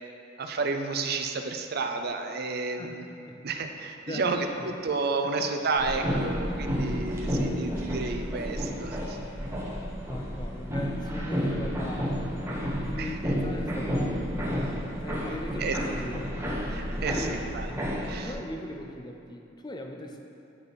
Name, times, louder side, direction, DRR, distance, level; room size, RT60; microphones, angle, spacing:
voice 1, 0.4-3.0 3.4-9.2 13.0-13.3 15.6-15.8 16.7-17.7 18.0-18.3, right 3 dB, 50° right, 6 dB, 0.5 m, -31 dB
voice 2, 2.6-2.9 3.2-3.4 4.1-4.3 4.5-4.7 10.1-14.6 15.0-16.4 17.1-17.5 18.2-20.3, left 1 dB, 20° left, 3 dB, 0.5 m, -40 dB
sound 1, 5.8-18.3, equal, 15° right, 0.9 m, -31 dB
9.5 x 5.5 x 4.1 m, 2.6 s
head